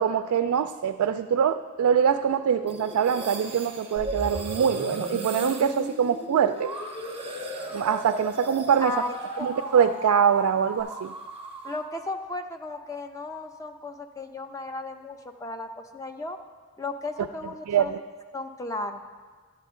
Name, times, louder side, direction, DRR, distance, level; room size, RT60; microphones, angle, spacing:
voice 1, 0.0-6.7 7.7-8.9 9.4-11.1 17.7-18.0, right 7 dB, 80° right, 9 dB, 0.3 m, -24 dB
sound 1, 2.7-10.1 10.3-11.9, right 2 dB, 25° right, 0.8 m, -38 dB
sound 2, 4.0-10.8, equal, 45° left, 3.3 m, -38 dB
voice 2, 8.8-9.5 11.6-16.4 16.8-18.0 18.3-19.0, left 2 dB, 15° left, 6 dB, 0.4 m, -35 dB
12.0 x 8.4 x 3.7 m, 1.5 s
head